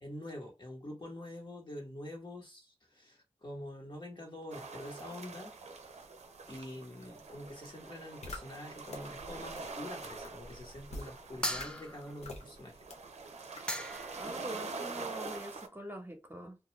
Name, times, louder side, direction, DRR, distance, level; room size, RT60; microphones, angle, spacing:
voice 1, 0.0-5.5 5.9-6.1 6.5-12.9, left 1 dB, 45° left, 1.2 m, -46 dB
sound 1, 4.5-15.7, right 4 dB, 90° right, 0.4 m, -45 dB
sound 2, 8.2-8.4 8.9-9.0 9.6-9.7 10.2-10.3 10.9-11.1 11.6-11.7 12.2-12.4 12.9-13.0 13.6-13.7, left 2 dB, 80° left, 0.7 m, -42 dB
sound 3, 11.4-12.2 13.3-13.4 13.7-14.3, equal, 10° left, 0.4 m, -37 dB
voice 2, 14.1-16.6, right 1 dB, 20° right, 0.9 m, -44 dB
2.3 x 2.3 x 3.1 m
cardioid pair, 40°, 11 cm